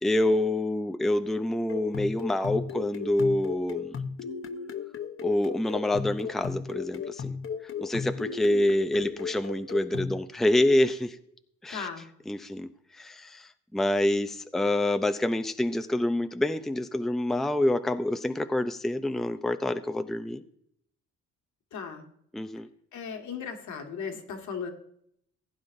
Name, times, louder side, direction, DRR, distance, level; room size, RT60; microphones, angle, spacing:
voice 1, 0.0-4.0 5.2-7.4 7.8-11.2 11.6-11.9 12.3-20.4 22.3-22.7, left 1 dB, ahead, 9 dB, 0.6 m, -27 dB
sound 1, 1.7-10.2, left 6 dB, 45° left, 0.8 m, -35 dB
voice 2, 11.7-12.1 21.7-22.1 22.9-24.7, left 6 dB, 70° left, 3 dB, 1.9 m, -36 dB
16.0 x 9.4 x 2.6 m, 0.70 s
cardioid pair, 90°, 30 cm